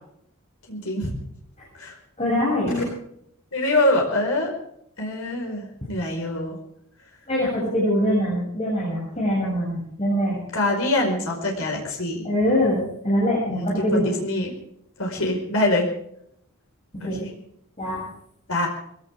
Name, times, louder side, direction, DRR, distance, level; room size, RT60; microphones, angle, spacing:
voice 1, 0.7-1.1 1.8-1.9 2.7-2.8 3.5-4.5 5.0-6.6 10.5-12.2 13.4-14.5 15.0-15.9 17.0-17.3 18.5-18.7, left 1 dB, 65° left, 1 dB, 5.1 m, -24 dB
voice 2, 2.2-2.8 7.3-10.4 12.2-14.0 16.9-17.2 17.8-18.0, equal, 30° left, -6 dB, 7.6 m, -23 dB
22.0 x 17.5 x 3.7 m, 0.72 s
head